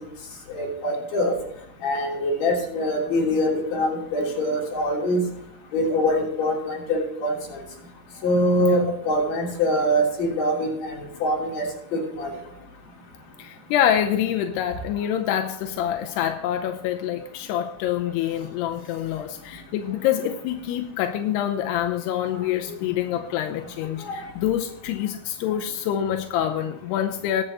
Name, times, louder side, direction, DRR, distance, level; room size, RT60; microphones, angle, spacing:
voice 1, 0.5-1.3 1.8-5.2 5.7-7.6 8.2-11.6 11.9-12.4 24.1-24.2, left 1 dB, 45° left, -3 dB, 4.0 m, -24 dB
voice 2, 13.4-27.4, left 10 dB, 85° left, 5 dB, 2.8 m, -26 dB
20.5 x 7.7 x 3.0 m, 0.76 s
omnidirectional pair, 4.7 m